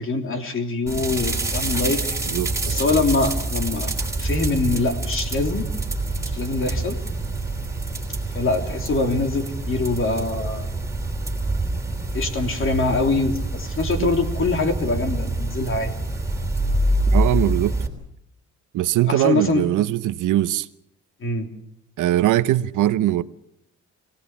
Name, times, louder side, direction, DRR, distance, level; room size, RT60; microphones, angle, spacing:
voice 1, 0.0-2.0 2.7-3.9 4.2-5.7 6.3-7.0 8.3-10.7 12.1-15.9 19.1-19.6 21.2-21.5, left 3 dB, 45° left, 3.3 m, -24 dB
sound 1, 0.9-17.9, right 2 dB, 10° right, 3.2 m, -26 dB
voice 2, 2.3-2.8 14.0-14.1 17.1-17.8 18.7-20.7 22.0-23.2, right 13 dB, 85° right, 0.9 m, -21 dB
25.0 x 17.5 x 7.2 m
cardioid pair, 115°, 30 cm